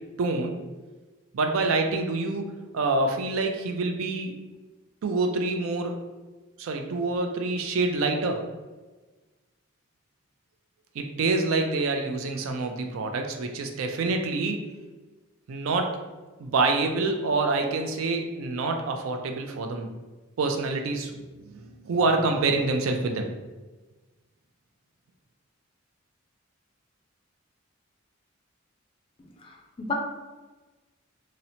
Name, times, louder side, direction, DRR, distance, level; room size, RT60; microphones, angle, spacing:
voice 1, 0.2-0.6 1.3-4.4 5.0-6.0 6.6-8.4 11.0-14.6 15.5-16.0 16.4-19.9 20.4-21.1 21.4-23.3, right 3 dB, 80° right, 4 dB, 0.4 m, -26 dB
voice 2, 29.2-29.9, left 4 dB, 25° left, 1 dB, 0.3 m, -34 dB
2.8 x 2.0 x 2.7 m, 1.2 s
head